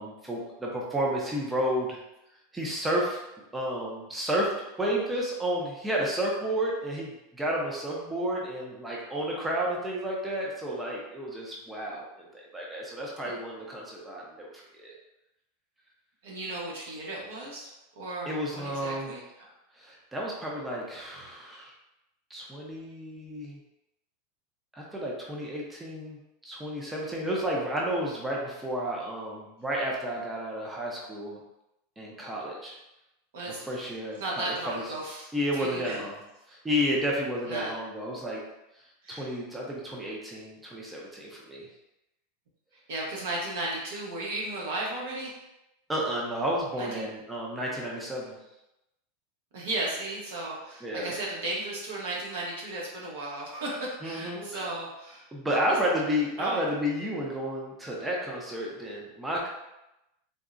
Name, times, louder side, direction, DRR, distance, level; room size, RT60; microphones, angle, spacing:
voice 1, 0.0-2.0 2.5-3.2 3.5-12.3 12.5-14.9 18.3-19.2 19.8-21.7 22.3-23.6 24.7-31.4 32.0-32.7 33.6-34.8 35.3-36.2 36.5-38.4 39.1-41.7 45.9-48.4 50.8-51.1 54.0-54.7 55.3-59.5, equal, 10° right, -3 dB, 0.5 m, -31 dB
voice 2, 16.2-17.7 18.0-19.2 33.3-36.1 37.4-37.7 39.0-39.4 42.9-45.4 46.7-47.1 49.5-55.3 55.7-55.8 56.4-56.6, right 2 dB, 80° right, -3 dB, 1.0 m, -35 dB
3.6 x 2.0 x 2.5 m, 0.91 s
supercardioid pair, 155°, 0 cm